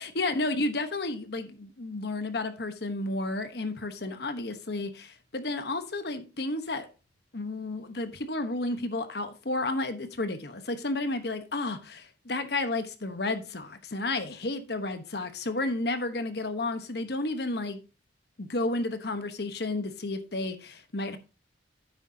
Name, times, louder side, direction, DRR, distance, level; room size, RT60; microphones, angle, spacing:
voice 1, 0.0-6.9 7.3-17.8 18.4-21.2, left 2 dB, 60° left, 1.1 m, -32 dB
10.0 x 8.1 x 2.8 m
head